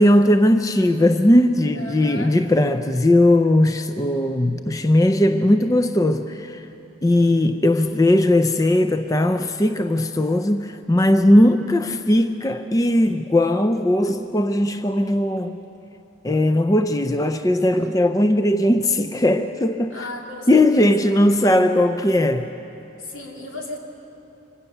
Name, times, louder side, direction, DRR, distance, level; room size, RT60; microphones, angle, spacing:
voice 1, 0.0-6.6 7.0-15.6 16.2-19.9 20.5-22.5, left 1 dB, 15° left, 0.4 m, -18 dB
voice 2, 1.7-2.4 17.7-17.9 19.9-21.3 23.0-23.8, left 1 dB, 80° left, 2.6 m, -35 dB
25.0 x 16.5 x 6.7 m
head